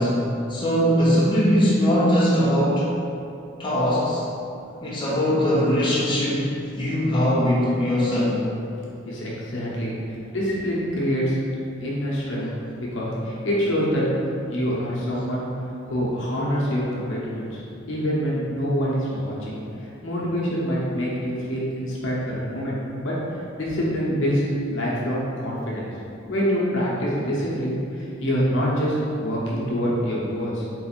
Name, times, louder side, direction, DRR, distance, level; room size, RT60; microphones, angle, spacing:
voice 1, 0.0-2.9 3.6-4.2 4.8-6.5 6.8-8.4, equal, 25° left, -8 dB, 0.8 m, -21 dB
voice 2, 9.0-9.9 10.3-11.4 11.8-12.5 12.8-14.0 14.5-15.4 15.8-23.1 23.6-25.9 26.3-30.6, equal, 75° left, -6 dB, 0.9 m, -25 dB
4.1 x 2.5 x 4.3 m, 2.6 s
head